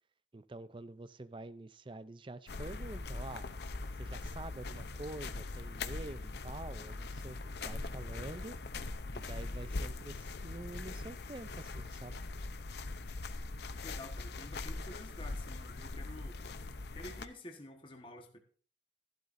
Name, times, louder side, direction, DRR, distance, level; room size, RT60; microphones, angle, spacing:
voice 1, 0.3-3.5 4.0-8.6 9.1-12.2, right 2 dB, 25° right, 0.4 m, -47 dB
sound 1, 2.5-17.3, left 3 dB, 60° left, 0.7 m, -41 dB
voice 2, 13.8-16.4 16.9-18.4, left 1 dB, 30° left, 1.3 m, -50 dB
15.0 x 12.0 x 2.6 m
head